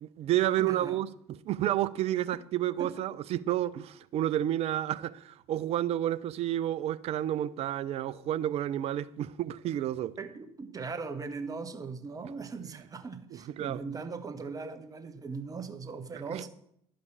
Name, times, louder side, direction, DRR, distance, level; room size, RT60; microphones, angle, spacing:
voice 1, 0.0-10.1 13.3-13.8 16.1-16.4, right 12 dB, 45° right, 0.5 m, -30 dB
voice 2, 0.6-1.0 2.8-2.9 10.2-16.5, right 4 dB, 25° right, 1.2 m, -39 dB
11.0 x 5.2 x 7.0 m
hypercardioid pair, 75°, 14 cm